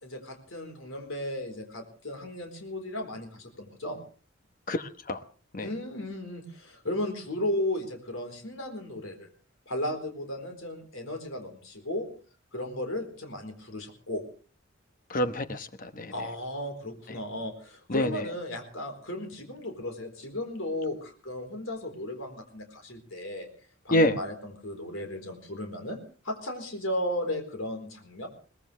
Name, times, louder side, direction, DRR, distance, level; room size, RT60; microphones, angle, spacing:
voice 1, 0.0-4.0 5.6-9.3 9.7-12.1 12.5-14.2 16.1-23.5 23.8-26.0 26.2-28.3, left 1 dB, 75° left, 4 dB, 4.2 m, -35 dB
voice 2, 4.7-5.2 5.5-5.7 15.1-16.1 17.9-18.2 23.9-24.2, left 1 dB, 40° left, 10 dB, 1.1 m, -27 dB
22.0 x 19.0 x 3.4 m, 0.40 s
head